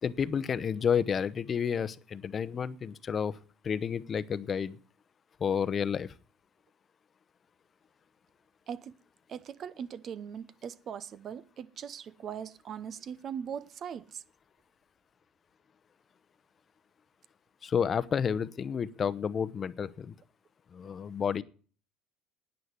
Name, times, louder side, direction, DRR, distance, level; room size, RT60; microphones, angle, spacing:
voice 1, 0.0-3.4 3.6-4.8 5.4-6.1 17.6-20.1 20.7-21.4, left 7 dB, 35° left, 0.8 m, -30 dB
voice 2, 9.3-14.0, right 8 dB, 45° right, 0.8 m, -40 dB
9.6 x 9.1 x 9.6 m
supercardioid pair, 90°, 0 cm